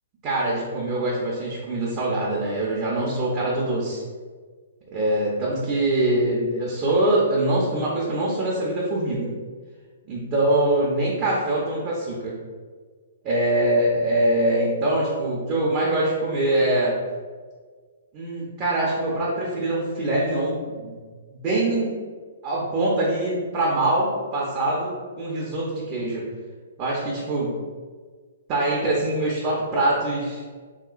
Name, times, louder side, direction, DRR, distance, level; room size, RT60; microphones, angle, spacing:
voice 1, 0.2-4.0 4.9-9.3 10.1-12.3 13.2-17.0 18.1-21.0 21.3-21.9 22.4-26.2 26.8-27.6 28.5-30.4, right 1 dB, 30° right, -6 dB, 0.6 m, -23 dB
3.0 x 2.8 x 2.4 m, 1.5 s
hypercardioid pair, 145°, 0 cm